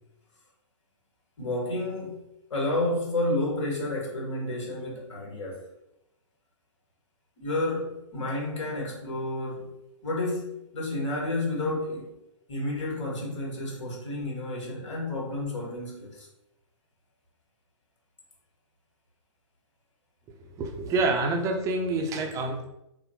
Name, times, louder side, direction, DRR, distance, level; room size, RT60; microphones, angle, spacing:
voice 1, 1.4-2.2 2.5-5.6 7.4-12.2 12.5-16.3, left 1 dB, 65° left, 1.4 m, -31 dB
voice 2, 20.4-22.7, right 3 dB, 20° right, 0.5 m, -27 dB
4.0 x 2.1 x 2.7 m
figure-of-eight pair, 120°, 16 cm